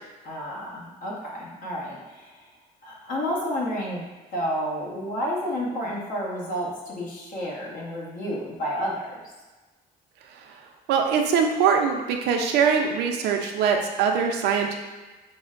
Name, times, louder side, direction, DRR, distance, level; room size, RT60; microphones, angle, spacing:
voice 1, 0.2-2.3 2.8-4.0 4.3-9.1, equal, 55° left, -4 dB, 1.1 m, -30 dB
voice 2, 10.9-14.8, right 6 dB, 80° right, 3 dB, 0.5 m, -22 dB
5.9 x 2.1 x 2.4 m, 1.2 s
cardioid pair, 110°, 17 cm